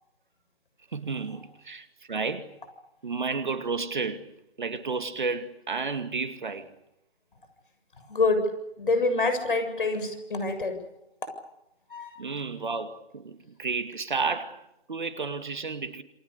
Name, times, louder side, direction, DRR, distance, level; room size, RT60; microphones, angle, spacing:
voice 1, 0.9-2.5 3.0-4.2 4.6-6.7 12.2-16.0, right 4 dB, 50° right, 2.3 m, -32 dB
voice 2, 8.0-8.4 8.8-10.8 11.9-12.2, left 3 dB, 55° left, 7.5 m, -26 dB
28.5 x 24.0 x 6.8 m
figure-of-eight pair, 160°, 32 cm